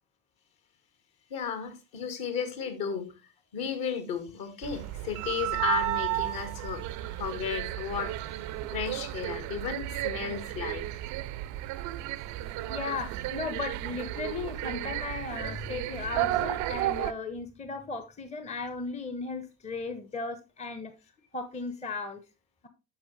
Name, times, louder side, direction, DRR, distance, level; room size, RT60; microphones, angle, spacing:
voice 1, 1.3-3.1 3.5-6.8 7.1-8.4 8.7-10.8, left 7 dB, 50° left, 2.0 m, -34 dB
sound 1, 4.6-17.1, right 15 dB, 40° right, 0.6 m, -33 dB
voice 2, 12.7-20.9 21.3-22.2, left 4 dB, 15° left, 0.9 m, -36 dB
9.3 x 6.2 x 3.3 m
figure-of-eight pair, 65°, 46 cm